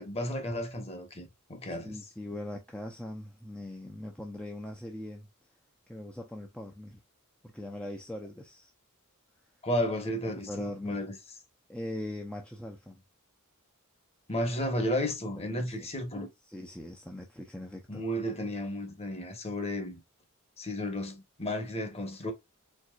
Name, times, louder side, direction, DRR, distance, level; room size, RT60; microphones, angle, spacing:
voice 1, 0.0-2.0 9.6-11.1 14.3-16.3 17.9-20.0 20.6-22.3, left 1 dB, 30° left, 1.3 m, -33 dB
voice 2, 1.6-5.3 5.9-7.0 7.4-8.7 10.4-11.1 11.7-13.0 15.5-15.9 16.5-18.0, left 1 dB, 5° left, 0.6 m, -41 dB
4.6 x 3.7 x 2.4 m
head